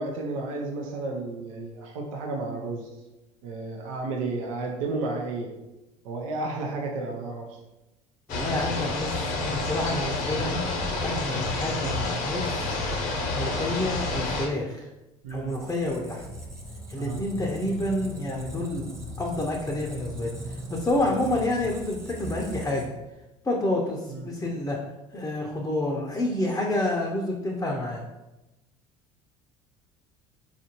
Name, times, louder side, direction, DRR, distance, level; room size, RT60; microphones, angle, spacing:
voice 1, 0.0-2.9 3.4-5.5 6.0-7.5 15.2-15.5 16.9-17.2 24.1-24.3, right 3 dB, 80° right, 0 dB, 0.6 m, -32 dB
sound 1, 8.3-14.5, left 3 dB, 60° left, 0.7 m, -29 dB
voice 2, 8.3-10.6 11.0-12.7 13.3-14.8 15.3-16.2 16.9-18.9 19.2-20.3 20.7-22.9 23.4-24.8 25.1-28.0, left 1 dB, 15° left, 0 dB, 0.6 m, -28 dB
Squeak, 15.3-23.1, equal, 15° right, 0.9 m, -39 dB
4.2 x 2.5 x 2.9 m, 1.0 s
hypercardioid pair, 70°, 17 cm